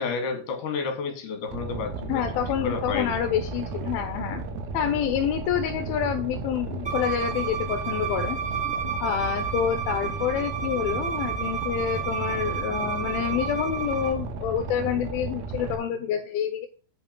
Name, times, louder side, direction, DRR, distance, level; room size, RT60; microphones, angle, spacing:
voice 1, 0.0-2.2 2.6-3.2 8.8-8.9, left 5 dB, 55° left, 4 dB, 3.1 m, -30 dB
Boat Water vehicle, 1.5-15.8, right 4 dB, 75° right, 2.9 m, -34 dB
voice 2, 2.1-4.4 4.7-8.4 9.0-16.7, left 9 dB, 80° left, 7 dB, 2.4 m, -27 dB
Bowed string instrument, 6.8-14.1, right 7 dB, 40° right, 0.3 m, -31 dB
8.2 x 4.8 x 5.2 m, 0.40 s
omnidirectional pair, 4.6 m